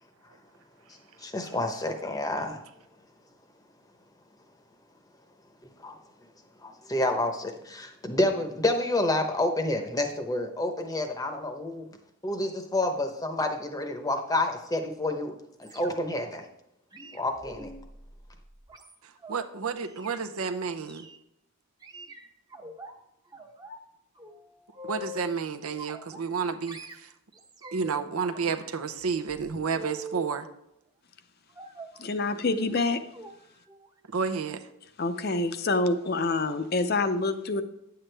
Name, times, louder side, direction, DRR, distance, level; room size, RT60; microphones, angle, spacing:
voice 1, 0.9-2.6 5.6-6.0 6.6-11.9 12.2-16.5 17.1-17.7, left 1 dB, 15° left, 6 dB, 0.8 m, -29 dB
sound 1, 15.6-16.2 16.9-19.4 19.8-20.2 20.9-21.2 21.8-22.9 23.3-23.9 24.2-25.4 25.8-26.4 26.7-28.0 28.3-30.4 31.5-32.0 32.7-32.9 33.1-33.3 33.7-33.9 34.2-34.3, right 1 dB, 20° right, 0.8 m, -44 dB
voice 2, 19.0-21.1 24.8-27.1 27.7-30.5 34.1-34.6, right 5 dB, 85° right, 8 dB, 0.7 m, -31 dB
voice 3, 32.0-33.0 35.0-37.6, left 3 dB, 45° left, 9 dB, 0.6 m, -26 dB
9.8 x 7.9 x 3.3 m, 0.82 s
head